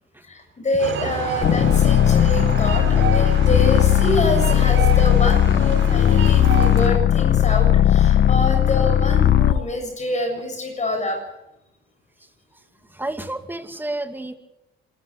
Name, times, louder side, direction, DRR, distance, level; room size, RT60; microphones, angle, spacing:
voice 1, 0.2-11.2, left 1 dB, 35° left, 3 dB, 7.3 m, -26 dB
sound 1, 0.8-6.9, right 6 dB, 75° right, 5.0 m, -29 dB
sound 2, 1.4-9.6, left 11 dB, 60° left, 1.1 m, -17 dB
voice 2, 12.9-14.4, right 2 dB, 10° right, 7 dB, 2.3 m, -30 dB
26.5 x 13.5 x 8.2 m, 0.89 s
cardioid pair, 90°, 20 cm